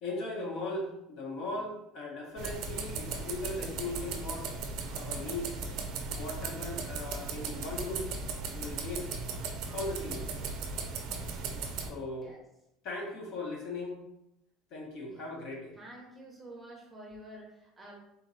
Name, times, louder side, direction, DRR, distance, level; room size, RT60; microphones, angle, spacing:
voice 1, 0.0-4.5 4.9-5.7 6.1-8.1 8.5-9.1 9.7-10.4 11.8-12.3 12.8-14.0 14.7-15.7, left 2 dB, 45° left, 0 dB, 0.9 m, -38 dB
sound 1, 2.4-11.9, right 4 dB, 50° right, 0.5 m, -37 dB
voice 2, 15.8-18.0, right 1 dB, 10° right, -2 dB, 0.8 m, -49 dB
3.9 x 2.9 x 3.9 m, 0.82 s
cardioid pair, 175°, 0 cm